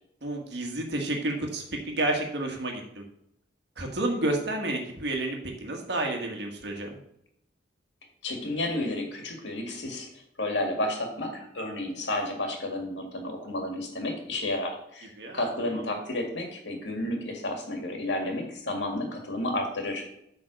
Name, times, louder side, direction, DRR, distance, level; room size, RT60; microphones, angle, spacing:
voice 1, 0.2-3.0 3.8-7.0 15.2-15.8, right 2 dB, 65° right, 2 dB, 1.5 m, -30 dB
voice 2, 8.2-10.1 10.4-20.1, left 1 dB, 75° left, 2 dB, 2.0 m, -31 dB
8.6 x 4.0 x 6.3 m, 0.74 s
head